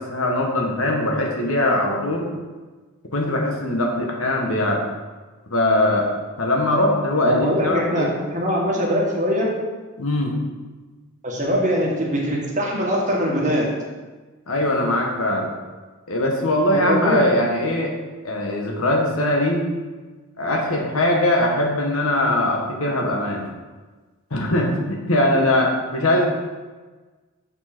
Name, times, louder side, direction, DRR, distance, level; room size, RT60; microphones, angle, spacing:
voice 1, 0.0-2.3 3.1-4.8 5.5-6.1 6.4-8.1 10.0-10.3 14.5-15.5 16.1-17.9 18.2-19.7 20.4-23.5 24.3-26.4, left 1 dB, 75° left, 0 dB, 1.4 m, -21 dB
voice 2, 7.2-9.5 11.2-13.7 16.7-17.2, equal, 35° right, -3 dB, 1.8 m, -22 dB
7.0 x 4.7 x 6.0 m, 1.3 s
head